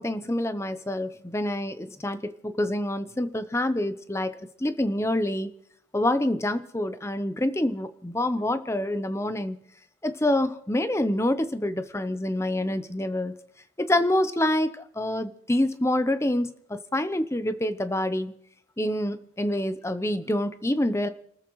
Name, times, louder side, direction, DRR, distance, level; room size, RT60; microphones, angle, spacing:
voice 1, 0.0-5.5 5.9-9.6 10.0-13.3 13.8-18.3 18.8-21.1, left 1 dB, 15° left, 11 dB, 0.7 m, -27 dB
29.5 x 13.5 x 3.1 m, 0.70 s
head